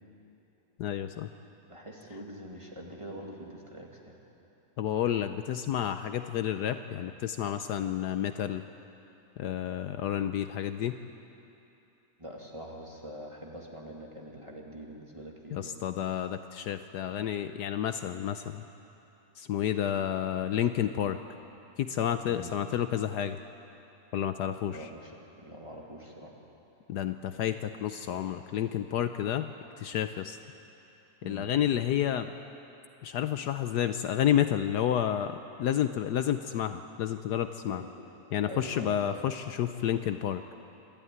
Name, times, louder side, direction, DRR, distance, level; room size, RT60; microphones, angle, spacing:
voice 1, 0.8-1.3 4.8-8.7 9.4-11.0 15.5-18.6 19.4-21.2 21.8-23.4 24.1-24.9 26.9-29.5 29.8-30.4 31.2-32.3 33.0-37.8 38.3-40.4, left 10 dB, 70° left, 9 dB, 1.2 m, -30 dB
voice 2, 1.7-4.2 12.2-15.8 22.3-22.5 24.6-26.3 31.2-31.5 37.7-37.9 38.5-39.2, equal, 15° right, -1 dB, 2.5 m, -44 dB
26.5 x 12.5 x 9.4 m, 2.9 s
omnidirectional pair, 1.9 m